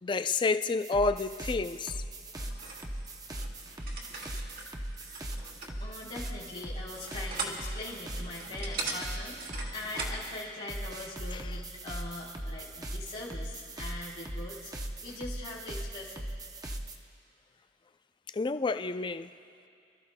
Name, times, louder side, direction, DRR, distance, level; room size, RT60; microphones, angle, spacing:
voice 1, 0.0-2.0 11.3-11.4 18.3-19.3, left 3 dB, 25° left, 0.3 m, -29 dB
sound 1, 0.8-17.0, right 1 dB, 20° right, 0.7 m, -39 dB
sound 2, 2.4-10.3, right 3 dB, 50° right, 1.7 m, -41 dB
voice 2, 5.8-16.2, left 2 dB, 40° left, 1.9 m, -42 dB
29.5 x 13.5 x 2.2 m
head